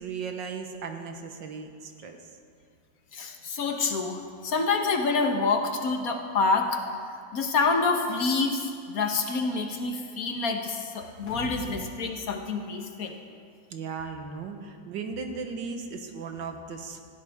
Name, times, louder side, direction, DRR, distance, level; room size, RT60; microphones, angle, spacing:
voice 1, 0.0-2.2 13.7-17.0, right 5 dB, 80° right, 5 dB, 1.8 m, -36 dB
voice 2, 3.1-6.8 7.3-13.1, left 4 dB, 55° left, 4 dB, 1.6 m, -27 dB
sound 1, 11.0-11.9 12.2-12.3, left 3 dB, 70° left, 2.4 m, -40 dB
18.0 x 15.5 x 3.6 m, 2.2 s
omnidirectional pair, 2.0 m